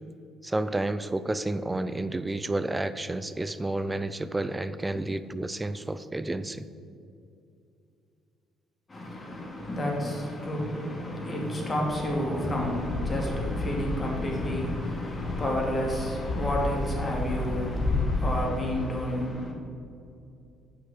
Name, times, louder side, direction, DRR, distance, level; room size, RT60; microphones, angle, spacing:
voice 1, 0.4-6.7, right 2 dB, 15° right, 0.4 m, -30 dB
voice 2, 8.9-19.5, left 1 dB, 25° left, 2.4 m, -30 dB
Fixed-wing aircraft airplane, 12.5-18.0, left 3 dB, 50° left, 1.5 m, -32 dB
8.3 x 6.0 x 6.7 m
cardioid pair, 95°, 0 cm